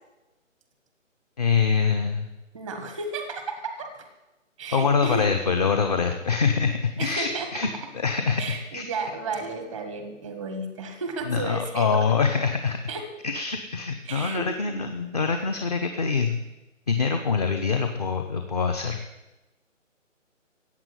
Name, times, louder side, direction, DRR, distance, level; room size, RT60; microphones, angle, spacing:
voice 1, 1.4-2.3 4.7-7.7 7.9-8.9 11.3-12.8 13.2-16.4 16.9-19.0, left 5 dB, 30° left, 6 dB, 1.0 m, -24 dB
voice 2, 2.5-3.9 4.6-5.3 7.0-7.5 8.4-11.9 12.9-13.0 14.0-14.8, right 4 dB, ahead, 6 dB, 0.8 m, -33 dB
15.0 x 8.5 x 9.3 m, 1.0 s
figure-of-eight pair, 160°, 39 cm